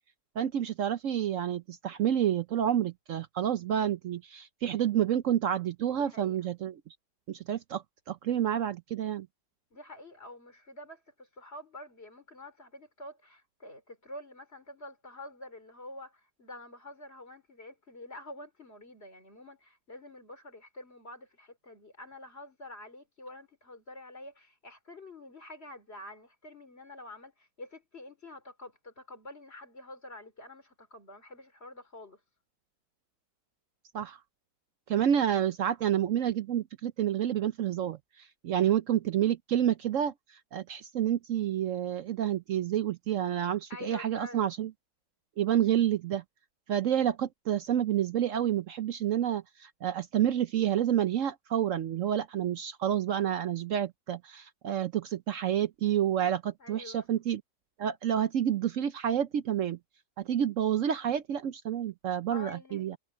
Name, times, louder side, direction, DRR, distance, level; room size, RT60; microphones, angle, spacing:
voice 1, 0.4-6.8 7.3-9.3 33.9-34.2 34.9-38.0 38.4-40.1 40.5-44.7 45.4-46.2 46.7-57.4 57.8-59.8 60.2-63.0, right 10 dB, 65° right, 0.8 m, -29 dB
voice 2, 5.9-6.4 9.7-32.2 35.2-35.3 43.7-44.5 56.6-57.1 62.3-62.8, left 1 dB, 35° left, 3.9 m, -47 dB
omnidirectional pair, 1.9 m